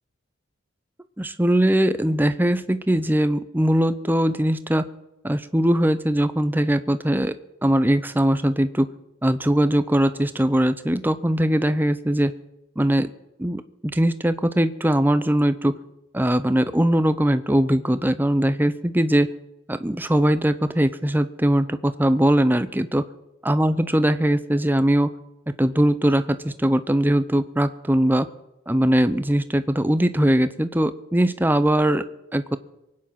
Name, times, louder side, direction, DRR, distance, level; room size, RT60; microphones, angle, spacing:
voice 1, 1.2-4.9 5.2-7.4 7.6-8.9 9.2-12.3 12.8-13.1 13.4-13.6 13.9-15.7 16.1-19.3 19.7-23.0 23.4-25.1 25.6-28.3 28.7-32.0 32.3-32.6, right 1 dB, 10° right, 12 dB, 0.6 m, -21 dB
23.5 x 9.7 x 5.8 m, 0.93 s
head